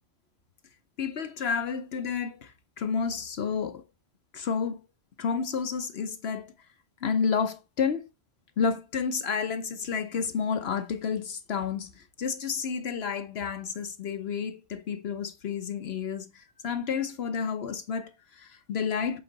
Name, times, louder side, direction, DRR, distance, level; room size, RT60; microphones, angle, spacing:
voice 1, 1.0-3.8 4.3-4.8 5.2-6.5 7.0-8.0 8.6-19.2, left 6 dB, 60° left, 0.9 m, -30 dB
7.8 x 4.0 x 3.9 m
omnidirectional pair, 1.3 m